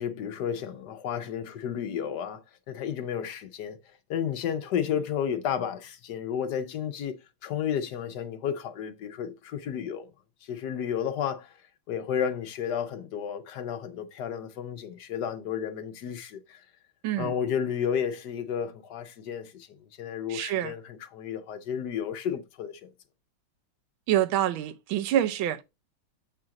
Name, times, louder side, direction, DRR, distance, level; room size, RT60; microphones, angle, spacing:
voice 1, 0.0-3.8 4.1-10.1 10.4-11.6 11.9-16.6 17.2-19.7 20.0-22.9, left 8 dB, 60° left, 1.3 m, -32 dB
voice 2, 20.3-20.7 24.1-25.6, right 12 dB, 75° right, 1.4 m, -26 dB
7.6 x 2.6 x 5.8 m
omnidirectional pair, 2.3 m